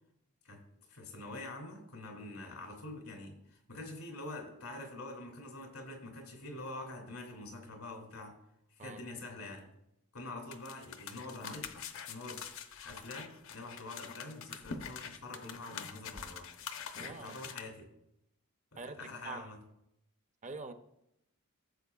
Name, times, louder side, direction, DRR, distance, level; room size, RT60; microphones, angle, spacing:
voice 1, 0.9-8.3 8.7-9.7 10.1-11.7 12.1-12.4 12.8-16.5 17.0-17.9 18.7-19.6, left 2 dB, 90° left, 2.6 m, -45 dB
sound 1, 10.5-17.6, left 6 dB, 65° left, 0.8 m, -45 dB
voice 2, 17.0-17.4 18.8-19.6 20.4-20.7, right 3 dB, 35° right, 0.6 m, -45 dB
14.5 x 7.5 x 2.4 m
head